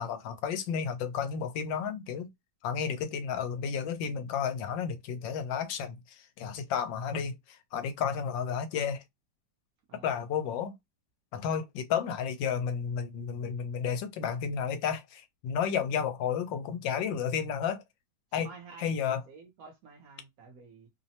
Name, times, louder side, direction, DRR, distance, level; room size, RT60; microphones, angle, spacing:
voice 1, 0.0-2.3 2.6-9.0 10.0-10.7 11.3-17.8 18.3-18.5 18.8-19.2, left 7 dB, 90° left, 1.3 m, -32 dB
voice 2, 18.4-20.9, right 5 dB, 65° right, 0.9 m, -50 dB
3.1 x 2.0 x 2.7 m
omnidirectional pair, 2.0 m